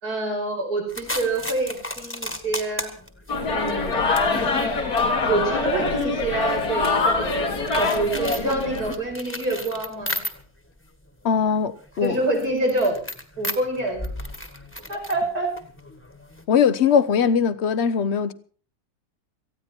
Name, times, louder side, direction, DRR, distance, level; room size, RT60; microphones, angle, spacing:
voice 1, 0.0-2.9 3.5-3.9 5.3-7.3 7.7-10.2 12.0-12.9 13.4-14.1 14.9-15.5, right 2 dB, 85° right, 6.0 m, -26 dB
sound 1, 0.9-10.7 11.0-16.4, left 1 dB, 10° left, 1.6 m, -36 dB
sound 2, 3.3-8.9, left 3 dB, 80° left, 2.6 m, -24 dB
voice 2, 11.2-12.2 16.5-18.3, left 7 dB, 50° left, 1.0 m, -20 dB
18.5 x 14.5 x 4.4 m
omnidirectional pair, 1.6 m